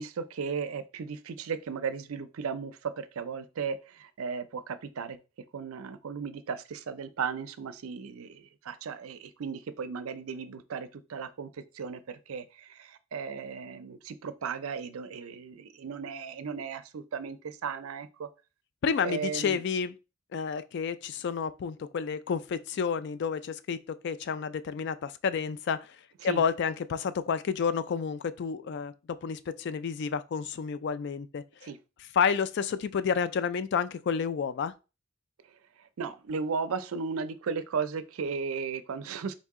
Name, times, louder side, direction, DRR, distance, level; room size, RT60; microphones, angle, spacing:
voice 1, 0.0-5.2 5.5-18.3 19.0-19.6 26.2-26.4 31.6-31.8 35.8-39.3, right 5 dB, 80° right, 0.4 m, -36 dB
voice 2, 18.8-19.9 20.3-26.0 26.2-31.7 32.1-34.7, left 6 dB, 55° left, 0.3 m, -30 dB
4.1 x 2.7 x 3.5 m
head